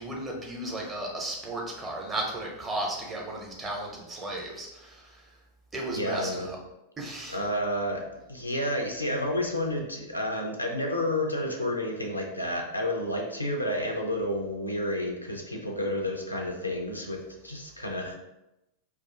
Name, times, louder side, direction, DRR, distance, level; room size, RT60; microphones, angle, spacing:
voice 1, 0.0-5.2 5.7-6.6 7.0-7.4, right 1 dB, 15° right, -2 dB, 0.8 m, -34 dB
voice 2, 5.9-6.5 7.3-8.0 8.3-18.2, left 1 dB, 85° left, 1 dB, 0.5 m, -30 dB
2.5 x 2.4 x 3.7 m, 0.90 s
figure-of-eight pair, 90°, 0 cm